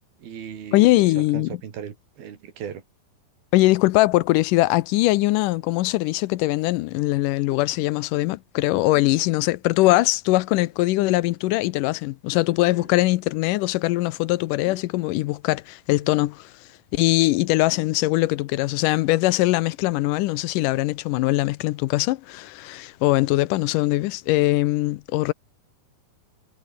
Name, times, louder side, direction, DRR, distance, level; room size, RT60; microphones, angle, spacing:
voice 1, 0.2-2.8, right 8 dB, 85° right, 4.8 m, -37 dB
voice 2, 0.7-1.5 3.5-16.5 16.9-25.3, left 18 dB, 75° left, 2.0 m, -21 dB
sound 1, 7.5-7.8 8.4-8.5 8.9-9.5 10.1-10.2 12.5-13.1 14.4-14.9 16.0-16.4 17.4-18.2, left 1 dB, 15° left, 7.3 m, -47 dB
omnidirectional pair, 4.2 m